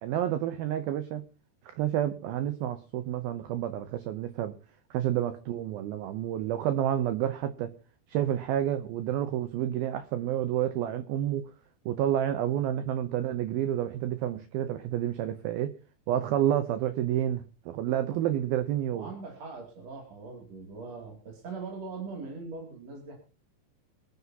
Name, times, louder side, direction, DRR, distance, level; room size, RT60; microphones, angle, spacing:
voice 1, 0.0-1.2 1.7-4.5 4.9-7.7 8.1-11.4 11.9-15.7 16.1-19.1, right 11 dB, 90° right, 10 dB, 2.1 m, -29 dB
voice 2, 18.9-23.1, right 4 dB, 40° right, 1 dB, 3.1 m, -41 dB
25.5 x 9.5 x 2.8 m, 0.33 s
omnidirectional pair, 5.4 m